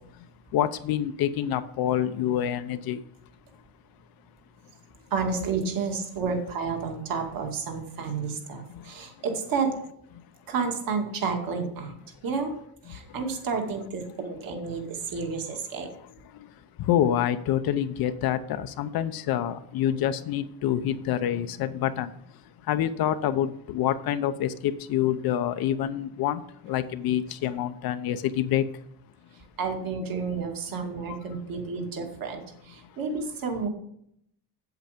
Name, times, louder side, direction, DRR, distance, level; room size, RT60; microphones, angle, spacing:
voice 1, 0.5-3.0 8.7-8.9 10.2-10.3 12.9-13.0 16.3-16.5 16.8-22.1 22.6-28.7 31.1-31.2, left 11 dB, 55° left, 10 dB, 0.8 m, -27 dB
voice 2, 5.1-9.7 10.5-11.9 12.2-12.5 12.8-15.9 27.4-27.5 29.6-33.7, right 5 dB, 50° right, 3 dB, 2.3 m, -30 dB
8.2 x 7.9 x 5.1 m, 0.71 s
cardioid pair, 105°, 43 cm